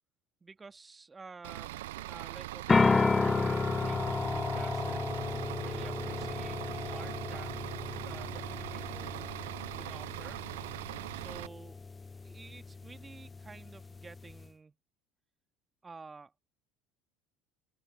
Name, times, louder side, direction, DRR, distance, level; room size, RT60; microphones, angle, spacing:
voice 1, 0.4-7.6 8.0-9.4 9.7-10.5 11.1-11.8 12.2-14.8 15.8-16.3, right 4 dB, 20° right, 2.5 m, -51 dB
Bus / Idling, 1.4-11.5, right 17 dB, 70° right, 0.8 m, -41 dB
sound 1, 2.7-14.5, left 4 dB, 20° left, 0.5 m, -33 dB
open air
figure-of-eight pair, 65°, 0 cm